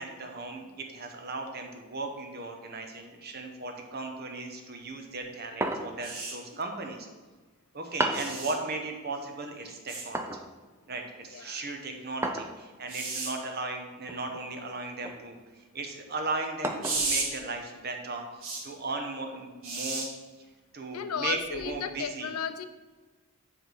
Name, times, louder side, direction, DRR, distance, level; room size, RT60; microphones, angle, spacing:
voice 1, 0.0-7.1 7.7-10.3 10.9-20.0 20.7-22.3, right 3 dB, 45° right, 3 dB, 1.0 m, -36 dB
sound 1, 5.6-6.1 8.0-8.4 10.1-10.5 12.2-12.6 14.1-14.4 15.0-15.2 16.6-17.1, right 1 dB, 10° right, 0.4 m, -32 dB
sound 2, 6.0-6.3 8.1-8.5 9.9-10.0 12.9-13.3 16.8-17.3 18.4-18.6 19.6-20.0 21.5-21.7, right 3 dB, 60° right, 1.7 m, -32 dB
voice 2, 11.2-11.7 20.9-22.7, left 7 dB, 85° left, 10 dB, 0.6 m, -35 dB
8.2 x 3.6 x 6.3 m, 1.3 s
head